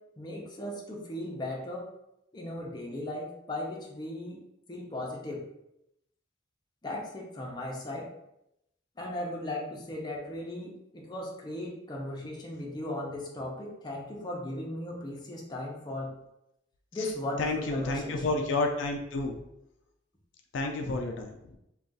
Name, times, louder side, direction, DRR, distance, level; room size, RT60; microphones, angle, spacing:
voice 1, 0.2-1.9 2.3-4.4 4.7-5.4 6.8-8.1 9.0-16.1 16.9-18.4, left 1 dB, 20° left, -2 dB, 0.6 m, -37 dB
voice 2, 17.4-19.3 20.5-21.4, left 3 dB, 70° left, 3 dB, 0.4 m, -30 dB
2.4 x 2.3 x 3.9 m, 0.83 s
head